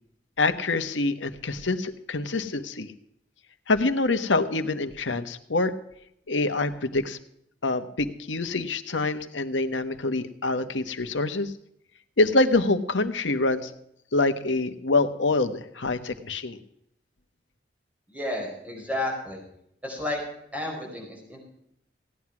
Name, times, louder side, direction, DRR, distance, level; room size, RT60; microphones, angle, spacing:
voice 1, 0.4-2.9 3.7-5.7 6.3-7.2 7.6-11.5 12.2-13.7 14.1-16.6, left 2 dB, 85° left, 9 dB, 1.2 m, -25 dB
voice 2, 18.1-19.4 19.8-20.2 20.5-21.4, left 1 dB, 10° right, -1 dB, 5.0 m, -32 dB
16.5 x 9.7 x 6.0 m, 0.74 s
head